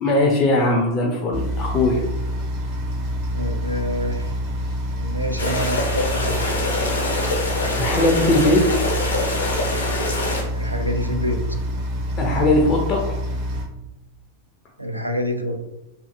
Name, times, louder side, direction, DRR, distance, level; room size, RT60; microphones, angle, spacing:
voice 1, 0.0-2.0 7.8-8.8 12.2-13.1, left 2 dB, 30° left, 0 dB, 0.4 m, -19 dB
sound 1, 1.3-13.7, equal, 40° right, 0.6 m, -27 dB
voice 2, 3.3-4.3 5.0-6.4 10.5-11.4 14.8-15.7, left 1 dB, 85° right, 3 dB, 0.3 m, -27 dB
sound 2, 5.4-10.4, left 2 dB, 70° left, 0.6 m, -25 dB
2.5 x 2.4 x 2.5 m, 0.88 s
figure-of-eight pair, 90°, 0 cm